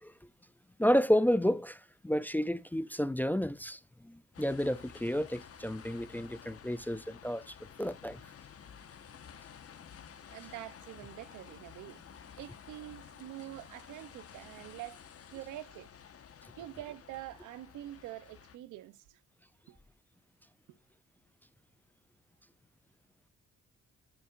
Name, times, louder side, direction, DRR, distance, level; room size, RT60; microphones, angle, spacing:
voice 1, 0.8-8.2, equal, 5° left, 0.4 m, -31 dB
sound 1, 4.3-18.6, left 8 dB, 50° left, 1.3 m, -52 dB
voice 2, 10.3-12.0 12.4-15.0 15.3-15.9 16.6-19.2 19.7-19.8 20.7-20.8, right 14 dB, 90° right, 0.8 m, -46 dB
9.9 x 7.8 x 2.5 m
cardioid pair, 90°, 30 cm